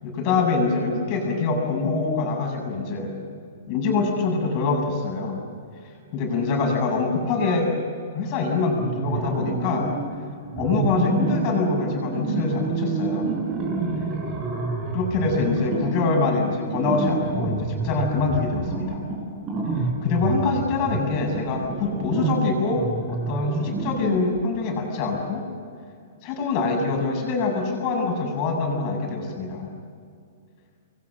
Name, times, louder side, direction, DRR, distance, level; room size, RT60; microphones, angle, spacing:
voice 1, 0.0-3.1 3.7-5.4 5.8-7.7 8.1-9.9 10.6-13.3 14.9-19.0 19.8-25.5 26.2-29.7, left 4 dB, 35° left, 2 dB, 7.3 m, -24 dB
sound 1, 8.8-10.1 10.5-24.4, right 3 dB, 25° right, 6.2 m, -28 dB
27.5 x 22.5 x 7.6 m, 2.3 s
hypercardioid pair, 155°, 0 cm